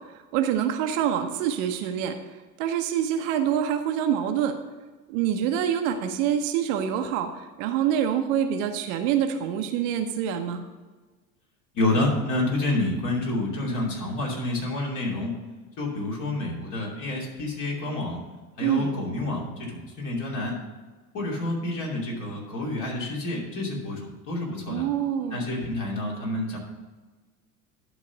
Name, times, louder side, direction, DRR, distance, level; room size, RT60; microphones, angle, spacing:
voice 1, 0.3-2.1 2.6-4.5 5.1-7.3 7.6-10.6 18.6-18.9 24.7-25.4, right 9 dB, 50° right, 6 dB, 0.9 m, -25 dB
voice 2, 11.7-15.4 15.8-18.2 18.6-20.6 21.1-24.9 25.3-26.6, left 2 dB, 40° left, -2 dB, 2.8 m, -28 dB
11.0 x 4.1 x 6.0 m, 1.3 s
figure-of-eight pair, 75°, 47 cm